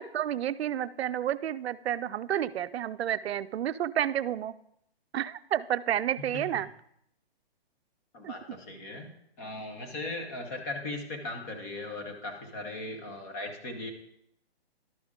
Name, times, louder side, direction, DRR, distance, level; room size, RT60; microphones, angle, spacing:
voice 1, 0.0-4.5 5.1-6.7 8.2-8.4, right 11 dB, 85° right, 13 dB, 0.5 m, -30 dB
voice 2, 8.1-9.1 9.4-13.9, left 2 dB, 15° left, 4 dB, 0.6 m, -38 dB
12.0 x 5.0 x 3.6 m, 0.74 s
hypercardioid pair, 165°, 31 cm